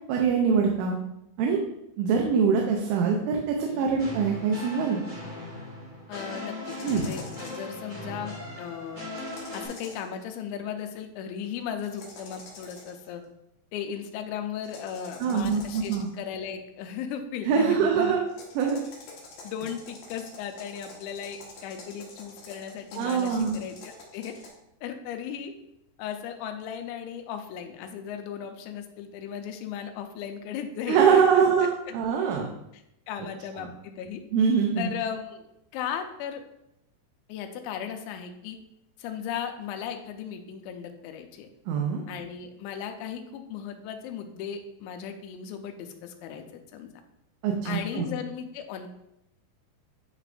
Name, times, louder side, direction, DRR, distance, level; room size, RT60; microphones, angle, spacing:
voice 1, 0.1-1.0 1.4-1.6 2.0-5.0 6.8-7.1 15.2-16.1 17.5-18.2 18.6-18.8 23.0-23.6 30.9-32.5 34.3-34.9 41.7-42.0 47.4-48.1, right 6 dB, 90° right, 1 dB, 3.1 m, -23 dB
sound 1, 4.0-9.7, left 1 dB, 35° right, 1.6 m, -38 dB
voice 2, 6.1-9.0 9.5-13.2 13.7-18.1 19.4-24.4 24.8-25.5 26.0-31.4 31.9-32.0 32.7-32.8 33.1-34.2 34.8-35.5 35.7-36.4 37.3-38.6 39.0-41.5 42.1-46.9 47.6-48.9, left 8 dB, 85° left, 5 dB, 2.9 m, -36 dB
sound 2, 6.7-7.7 9.1-10.1 11.8-13.1 14.6-16.2 18.3-24.5, left 3 dB, 60° left, 2.4 m, -47 dB
9.6 x 4.9 x 2.5 m, 0.82 s
omnidirectional pair, 5.3 m